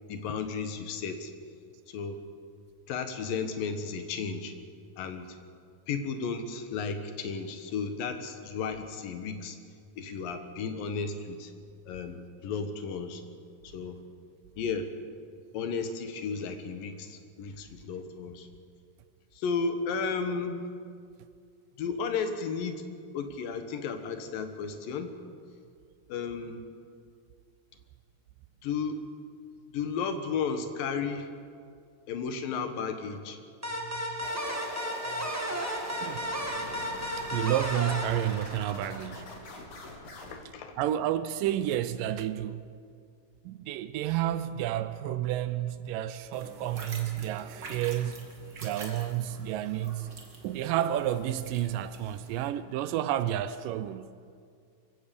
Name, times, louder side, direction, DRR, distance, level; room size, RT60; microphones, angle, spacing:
voice 1, 0.1-1.3 1.9-2.2 2.9-4.5 5.0-5.4 5.9-9.6 10.0-11.5 11.9-13.2 13.6-14.0 14.6-14.9 15.5-18.5 19.3-20.7 21.8-22.8 23.1-25.1 26.1-26.6 28.6-29.0 29.7-31.3 32.1-33.4 40.3-40.8, left 5 dB, 75° left, 3.0 m, -33 dB
sound 1, 33.6-39.0, equal, 20° right, 0.4 m, -34 dB
voice 2, 33.8-34.3 35.1-35.3 36.0-36.3 37.2-39.3 40.5-42.6 43.4-48.3 48.6-50.1 50.4-54.1, right 12 dB, 80° right, 2.1 m, -31 dB
sound 2, 34.2-40.4, left 2 dB, 50° left, 3.3 m, -43 dB
sound 3, 46.3-52.5, right 3 dB, 35° right, 2.4 m, -47 dB
23.5 x 16.0 x 6.9 m
omnidirectional pair, 4.1 m